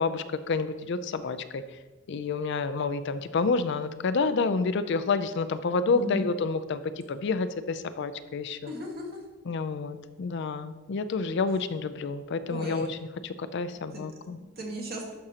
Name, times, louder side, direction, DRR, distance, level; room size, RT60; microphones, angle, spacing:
voice 1, 0.0-1.6 2.1-8.7 9.5-13.0 13.2-14.4, left 4 dB, 60° left, 12 dB, 0.4 m, -29 dB
voice 2, 5.9-6.3 8.6-9.2 12.4-12.9 13.9-14.0 14.6-15.1, equal, 50° right, 0 dB, 1.6 m, -36 dB
11.5 x 6.2 x 2.9 m, 1.2 s
head